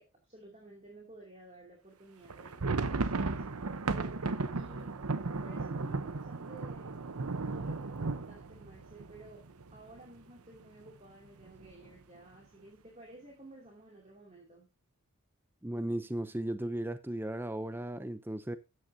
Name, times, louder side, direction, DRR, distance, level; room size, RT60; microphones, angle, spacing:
voice 1, 0.0-3.4 4.5-5.0 5.3-7.0 7.4-9.4 9.7-14.7, right 2 dB, 30° right, 2.7 m, -53 dB
sound 1, 2.3-10.0 10.3-10.4 10.7-10.9 11.4-11.9, right 3 dB, 90° right, 0.8 m, -35 dB
voice 2, 15.6-18.6, right 1 dB, 10° right, 0.5 m, -36 dB
13.0 x 9.3 x 2.7 m
head